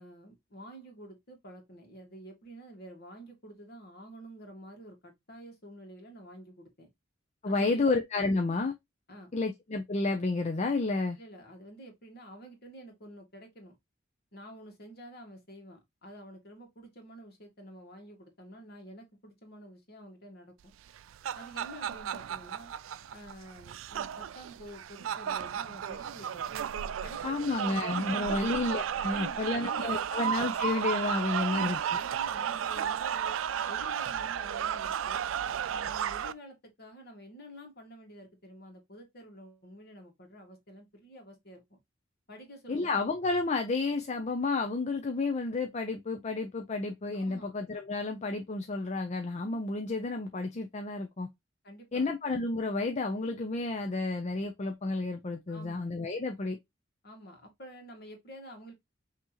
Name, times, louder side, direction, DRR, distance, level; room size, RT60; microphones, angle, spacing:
voice 1, 0.0-6.9 7.4-7.9 9.1-9.3 11.2-13.8 14.3-20.7 21.3-22.7 23.1-26.5 27.0-28.6 29.1-30.0 31.4-33.4 33.7-35.3 35.7-41.6 42.3-43.0 47.2-47.5 51.6-52.1 55.5-55.9 57.0-58.7, equal, 50° left, 1.8 m, -49 dB
voice 2, 7.4-8.7 9.3-11.2 27.2-31.8 42.7-51.3 51.9-56.6, left 3 dB, 35° left, 0.5 m, -31 dB
sound 1, 20.9-36.3, right 9 dB, 80° right, 0.3 m, -33 dB
5.8 x 2.9 x 2.9 m
head